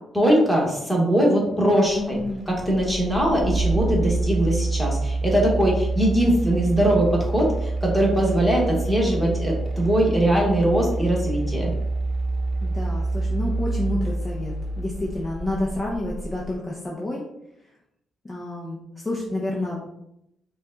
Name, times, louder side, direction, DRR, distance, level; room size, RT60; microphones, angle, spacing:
voice 1, 0.1-2.2 2.5-11.7, right 1 dB, 5° right, -3 dB, 1.6 m, -21 dB
voice 2, 1.9-2.5 12.6-17.2 18.2-19.9, left 2 dB, 20° left, -3 dB, 0.8 m, -29 dB
sound 1, 1.9-16.5, right 2 dB, 35° right, 0.9 m, -27 dB
5.1 x 2.4 x 3.9 m, 0.81 s
cardioid pair, 90°, 0 cm